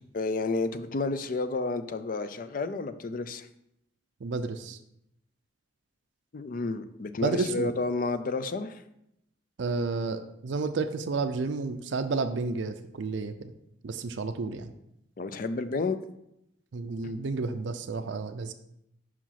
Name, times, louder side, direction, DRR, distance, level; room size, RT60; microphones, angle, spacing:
voice 1, 0.1-3.5 6.3-8.8 15.2-16.0, left 3 dB, 45° left, 11 dB, 0.5 m, -31 dB
voice 2, 4.2-4.8 7.2-7.7 9.6-13.5 13.8-14.7 16.7-18.5, right 4 dB, 75° right, 9 dB, 0.5 m, -31 dB
5.8 x 4.8 x 5.8 m, 0.80 s
head